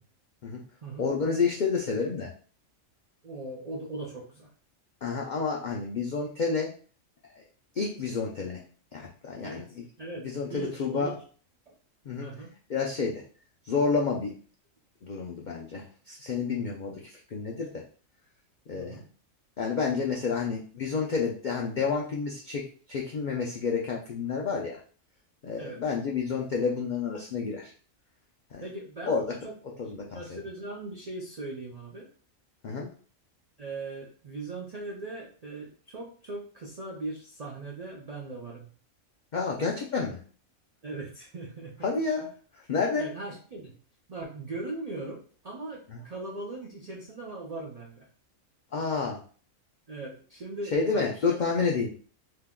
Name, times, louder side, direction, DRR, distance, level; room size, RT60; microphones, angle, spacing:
voice 1, 1.0-2.3 5.0-6.7 7.8-8.6 8.9-9.6 10.2-11.1 12.1-12.3 12.7-13.2 13.6-14.3 15.0-17.8 18.7-19.0 19.6-22.6 22.9-24.8 25.4-27.7 28.5-28.6 29.1-29.2 29.8-30.4 32.6-32.9 39.3-40.2 41.8-42.3 42.5-43.1 45.9-46.0 48.7-49.2 50.7-51.9, left 5 dB, 70° left, -1 dB, 0.4 m, -29 dB
voice 2, 3.2-4.5 9.4-11.2 11.7-11.8 12.2-12.5 18.7-19.1 25.6-25.8 28.6-29.5 30.1-32.1 33.6-38.7 40.8-41.9 43.0-43.8 44.1-48.1 49.9-51.5, right 2 dB, 60° right, -2 dB, 0.4 m, -39 dB
2.7 x 2.2 x 3.5 m, 0.42 s
omnidirectional pair, 1.4 m